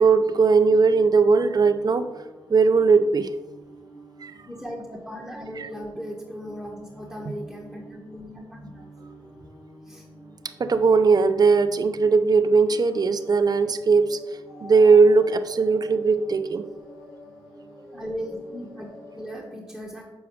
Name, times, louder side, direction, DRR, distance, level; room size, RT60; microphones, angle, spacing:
voice 1, 0.0-2.1 2.5-3.3 4.2-4.3 5.6-5.7 10.6-14.2 14.6-16.7, right 4 dB, 45° right, 9 dB, 0.5 m, -19 dB
sound 1, 0.6-19.4, equal, 85° left, 2.0 m, -47 dB
voice 2, 4.4-8.8 9.8-10.0 17.9-20.0, equal, 5° left, -4 dB, 1.4 m, -37 dB
7.1 x 4.7 x 3.2 m, 1.1 s
supercardioid pair, 40°, 9 cm